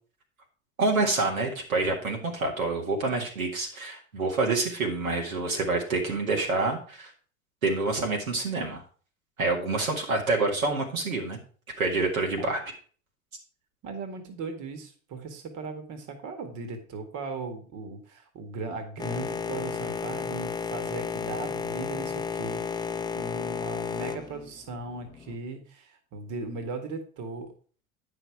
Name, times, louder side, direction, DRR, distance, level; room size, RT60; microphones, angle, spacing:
voice 1, 0.8-7.1 7.6-8.8 9.4-11.4 11.8-12.6, right 3 dB, 85° right, 0 dB, 2.1 m, -27 dB
voice 2, 13.8-27.5, right 3 dB, 45° right, 6 dB, 1.9 m, -38 dB
Boat Water vehicle, 19.0-25.4, left 6 dB, 10° left, 0.5 m, -33 dB
9.4 x 5.7 x 4.7 m, 0.41 s
hypercardioid pair, 75°, 40 cm